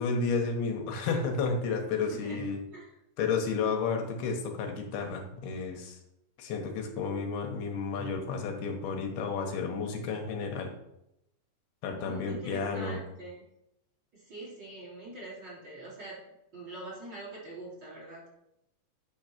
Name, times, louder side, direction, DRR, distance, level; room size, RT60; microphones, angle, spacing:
voice 1, 0.0-2.6 3.2-6.0 6.4-10.7 11.8-13.0, left 4 dB, 85° left, 3 dB, 3.1 m, -31 dB
voice 2, 2.1-2.4 2.7-2.9 12.0-13.4 14.1-16.2 16.5-18.2, right 1 dB, 30° right, -6 dB, 3.2 m, -44 dB
9.7 x 3.9 x 6.0 m, 0.84 s
omnidirectional pair, 4.4 m